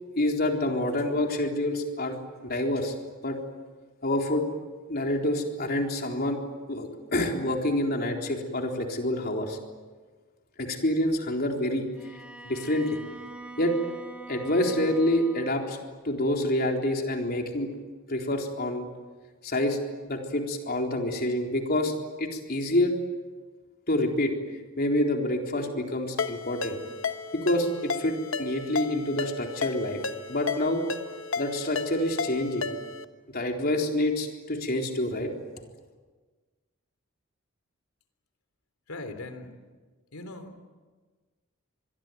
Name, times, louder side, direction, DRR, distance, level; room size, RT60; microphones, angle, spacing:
voice 1, 0.2-2.9 3.2-3.4 4.0-4.5 4.9-6.4 6.7-9.6 10.6-11.9 12.4-13.0 13.6-13.7 14.3-15.8 16.0-17.7 18.1-18.9 19.4-19.8 20.0-22.9 23.9-24.3 24.8-26.8 27.3-30.0 30.3-30.8 31.4-32.7 33.3-35.3, left 1 dB, 45° left, 2 dB, 4.0 m, -27 dB
Bowed string instrument, 11.9-15.7, right 2 dB, 5° right, 2.6 m, -44 dB
Ringtone, 26.2-33.1, left 4 dB, 65° left, 1.3 m, -33 dB
voice 2, 38.9-39.6 40.1-40.6, left 2 dB, 90° left, 8 dB, 3.5 m, -40 dB
26.0 x 21.5 x 9.5 m, 1.4 s
head